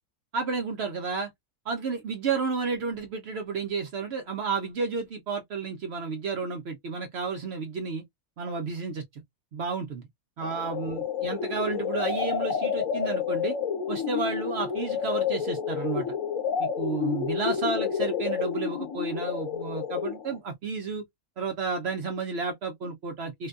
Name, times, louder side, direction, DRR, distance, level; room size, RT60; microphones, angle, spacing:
voice 1, 0.3-1.3 1.7-8.0 8.4-9.0 9.5-10.1 10.4-13.6 13.9-16.0 16.6-21.0 21.4-23.5, right 4 dB, 65° right, 0.6 m, -31 dB
sound 1, 10.4-20.4, left 7 dB, 65° left, 1.2 m, -30 dB
2.6 x 2.2 x 2.4 m
omnidirectional pair, 1.6 m